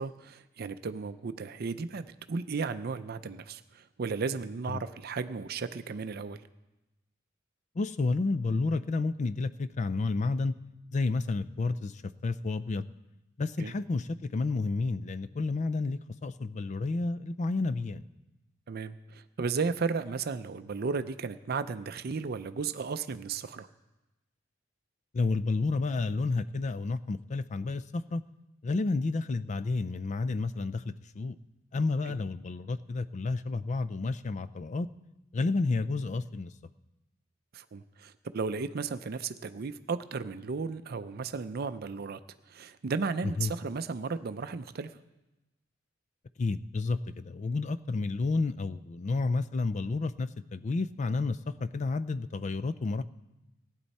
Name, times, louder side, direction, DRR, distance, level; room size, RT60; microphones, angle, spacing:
voice 1, 0.0-6.4 13.6-13.7 18.7-23.7 32.1-32.2 37.5-42.2 42.5-45.0, right 4 dB, 55° right, 11 dB, 0.5 m, -34 dB
voice 2, 7.8-10.5 10.9-12.9 13.4-18.0 25.1-28.2 28.6-31.4 31.7-34.9 35.3-36.5 43.2-43.5 46.4-53.0, left 3 dB, 40° left, 14 dB, 0.4 m, -31 dB
18.0 x 9.8 x 4.2 m, 1.0 s
head